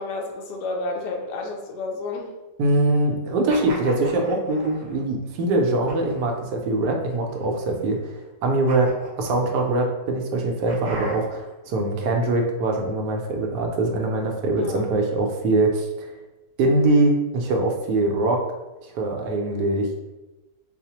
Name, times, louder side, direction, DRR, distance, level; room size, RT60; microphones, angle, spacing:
voice 1, 0.0-2.3 14.6-14.9, left 3 dB, 80° left, 2 dB, 1.2 m, -30 dB
voice 2, 2.6-8.2 8.4-8.9 9.2-16.1 16.6-18.4 18.9-19.9, right 2 dB, 80° right, 2 dB, 1.2 m, -23 dB
sound 1, 3.5-5.0 5.9-6.4 7.1-7.8 8.7-9.8 10.7-11.5, equal, 65° right, 0.4 m, -37 dB
4.7 x 2.0 x 2.8 m, 1.0 s
omnidirectional pair, 1.8 m